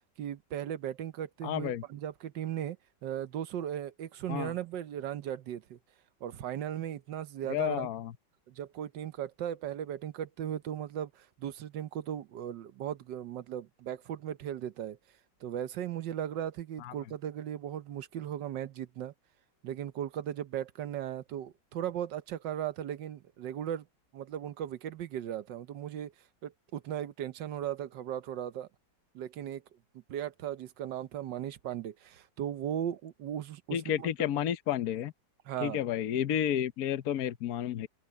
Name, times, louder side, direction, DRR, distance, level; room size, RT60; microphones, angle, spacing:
voice 1, 0.2-2.8 3.0-5.8 6.2-7.9 8.5-15.0 15.4-19.1 19.6-23.9 24.1-26.1 26.4-28.7 29.1-29.6 30.1-34.1 35.4-35.8, right 10 dB, 80° right, 1.5 m, -37 dB
voice 2, 1.4-1.8 4.3-4.5 7.5-8.1 16.8-16.9 33.7-35.1 35.6-37.9, left 10 dB, 60° left, 1.2 m, -31 dB
open air
omnidirectional pair, 1.9 m